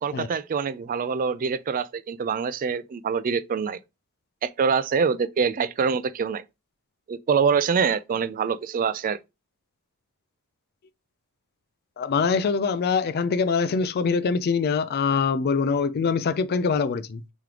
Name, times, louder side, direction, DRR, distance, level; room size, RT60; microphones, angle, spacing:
voice 1, 0.0-3.8 4.4-6.4 7.1-9.2, right 6 dB, 40° right, 0.3 m, -25 dB
voice 2, 12.0-17.2, left 5 dB, 45° left, 0.3 m, -24 dB
3.7 x 3.1 x 3.2 m
head